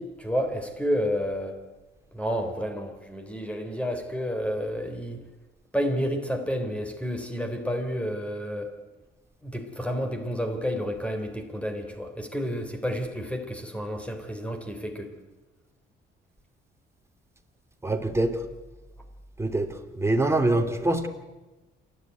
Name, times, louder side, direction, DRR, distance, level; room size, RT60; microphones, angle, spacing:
voice 1, 0.0-1.6 2.1-5.2 5.7-8.7 9.4-15.1, equal, 5° left, 6 dB, 3.4 m, -30 dB
voice 2, 17.8-18.3 19.4-19.7 19.9-21.1, right 2 dB, 15° right, 5 dB, 2.8 m, -24 dB
27.5 x 11.0 x 9.4 m, 1.1 s
cardioid pair, 90°, 20 cm